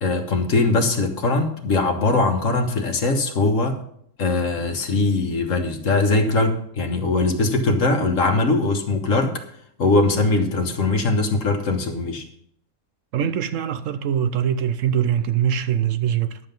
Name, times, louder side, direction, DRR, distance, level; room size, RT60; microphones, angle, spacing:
voice 1, 0.0-3.8 4.2-9.4 9.8-12.2, left 3 dB, 65° left, 1.6 m, -21 dB
voice 2, 13.1-16.4, right 9 dB, 70° right, 0.9 m, -22 dB
11.0 x 7.8 x 5.3 m
omnidirectional pair, 1.5 m